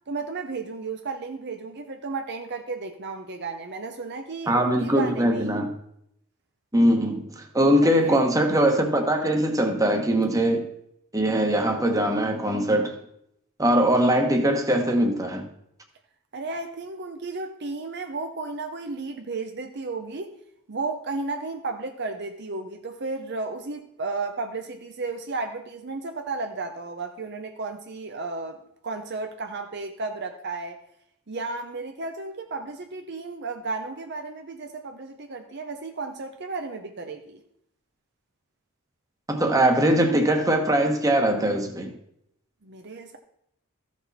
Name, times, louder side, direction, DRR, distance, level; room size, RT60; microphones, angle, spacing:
voice 1, 0.1-5.5 7.8-8.2 16.3-20.3 20.7-30.8 31.3-37.4 42.6-43.2, right 3 dB, 50° right, 0.8 m, -33 dB
voice 2, 4.5-5.7 6.7-10.7 11.1-12.9 13.6-15.5 39.3-41.9, right 1 dB, 15° right, 1.3 m, -21 dB
14.5 x 6.2 x 4.2 m
head